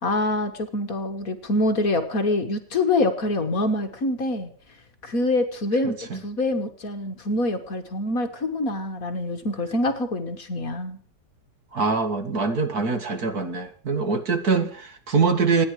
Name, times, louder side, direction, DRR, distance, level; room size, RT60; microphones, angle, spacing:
voice 1, 0.0-4.5 5.0-11.0, left 2 dB, 45° left, 7 dB, 1.9 m, -25 dB
voice 2, 11.7-15.7, right 4 dB, 50° right, 8 dB, 2.2 m, -23 dB
27.5 x 10.0 x 4.8 m, 0.42 s
omnidirectional pair, 2.2 m